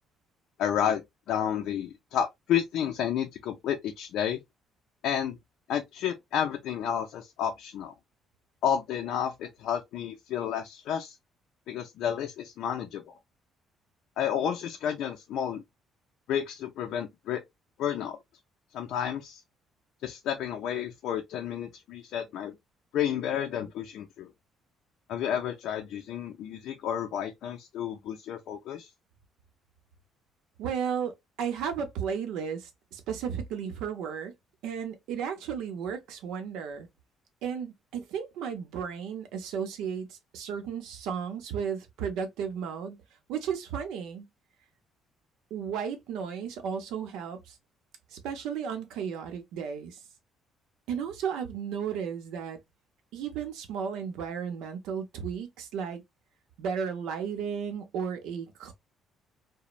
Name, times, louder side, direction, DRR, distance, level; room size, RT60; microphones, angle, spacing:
voice 1, 0.6-1.0 1.3-4.4 5.0-5.4 5.7-8.0 8.6-11.2 11.7-13.1 14.2-15.6 16.3-17.4 17.8-18.2 18.7-19.4 20.0-22.5 22.9-24.3 25.1-28.9, left 9 dB, 60° left, 0.4 m, -31 dB
voice 2, 30.6-31.1 31.4-34.3 34.6-36.9 37.4-43.0 43.3-44.3 45.5-47.6 48.1-50.0 50.9-52.6 53.1-56.0 56.6-58.7, right 7 dB, 90° right, 0.7 m, -34 dB
3.0 x 2.1 x 2.4 m
cardioid pair, 180°, 0 cm